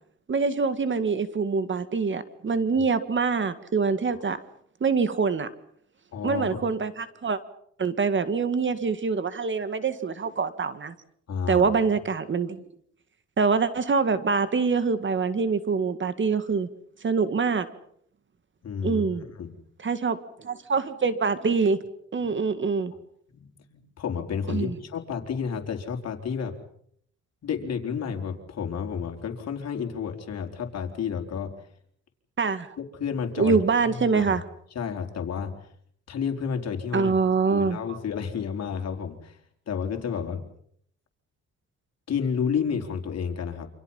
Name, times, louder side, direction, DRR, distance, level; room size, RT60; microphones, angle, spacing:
voice 1, 0.3-4.4 4.8-5.5 6.2-7.4 7.8-10.9 11.5-12.6 13.4-16.7 17.0-17.7 18.8-19.2 19.8-21.8 22.1-22.9 24.5-24.7 32.4-32.7 33.4-34.4 36.9-38.0, right 5 dB, 40° right, 12 dB, 2.0 m, -25 dB
voice 2, 6.1-6.6 11.3-11.7 18.6-19.5 22.2-22.3 23.3-26.5 27.4-31.5 32.8-33.6 33.9-34.4 34.7-35.5 36.1-37.2 37.5-39.4 39.7-40.5 42.1-43.7, left 7 dB, 55° left, 4 dB, 4.2 m, -31 dB
29.0 x 26.5 x 5.7 m, 0.67 s
cardioid pair, 90°, 30 cm